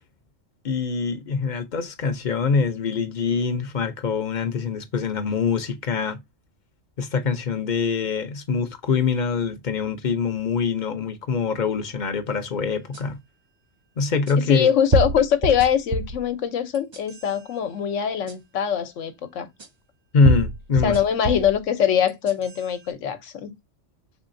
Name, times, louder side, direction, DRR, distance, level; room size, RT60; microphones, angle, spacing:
voice 1, 0.6-6.2 7.0-13.2 14.0-14.7 20.1-21.0, left 5 dB, 45° left, 0.8 m, -24 dB
sound 1, 12.9-13.0 14.3-14.4 14.9-16.2 16.7-17.3 18.3-18.4 19.6-19.7 20.2-21.6 22.1-22.6, right 2 dB, 35° right, 0.4 m, -25 dB
voice 2, 14.5-19.5 20.8-23.5, left 8 dB, 85° left, 1.1 m, -23 dB
5.4 x 3.6 x 2.5 m
omnidirectional pair, 1.2 m